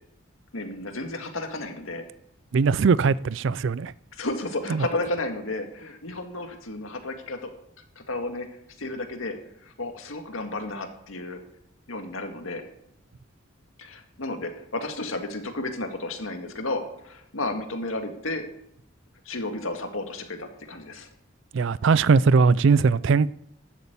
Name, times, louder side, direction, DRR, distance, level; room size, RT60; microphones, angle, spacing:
voice 1, 0.5-2.0 4.2-7.5 8.0-8.5 8.8-9.4 9.6-11.4 11.9-12.6 13.8-18.5 19.3-21.1, left 2 dB, 80° left, 2.0 m, -32 dB
voice 2, 2.5-3.9 4.7-4.9 21.5-23.3, right 5 dB, 65° right, 0.4 m, -20 dB
12.5 x 8.4 x 8.2 m
head